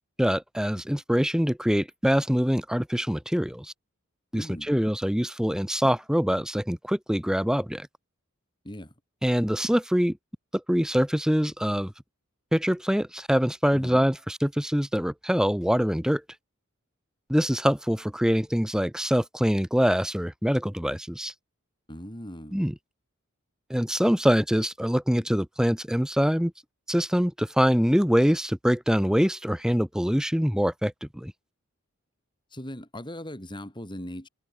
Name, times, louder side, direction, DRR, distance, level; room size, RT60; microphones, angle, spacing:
voice 1, 0.2-3.7 4.3-7.9 9.2-10.2 10.5-11.9 12.5-16.2 17.3-21.3 22.5-22.7 23.7-26.5 26.9-31.3, equal, 5° right, 1.2 m, -24 dB
voice 2, 4.3-4.7 8.6-8.9 13.7-14.1 21.9-22.7 32.5-34.3, equal, 20° left, 6.5 m, -39 dB
open air
head